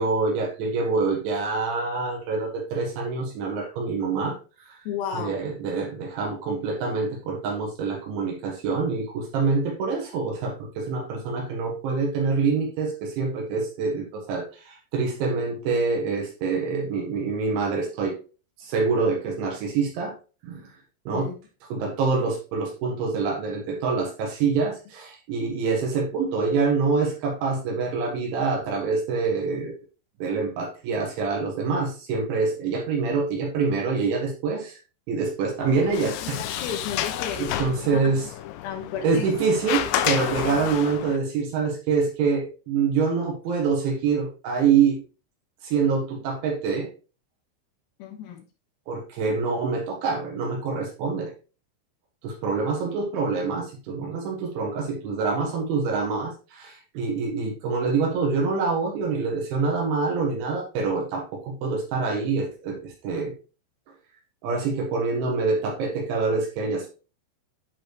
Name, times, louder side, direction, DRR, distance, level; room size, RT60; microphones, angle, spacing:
voice 1, 0.0-4.4 4.7-4.8 5.1-18.2 18.6-20.1 20.4-20.7 21.1-21.3 21.7-29.7 30.2-34.8 35.1-36.6 37.4-38.2 39.0-45.0 45.6-46.9 48.9-51.3 52.2-63.3 64.4-66.9, right 4 dB, 75° right, 0 dB, 3.7 m, -26 dB
voice 2, 4.8-5.4 21.1-21.3 36.0-38.1 38.6-39.3 40.4-40.6 48.0-48.4 52.9-53.0, left 7 dB, 65° left, 4 dB, 3.2 m, -34 dB
Sliding door, 35.6-41.2, left 11 dB, 90° left, 3.3 m, -30 dB
11.0 x 4.2 x 3.2 m, 0.34 s
omnidirectional pair, 5.7 m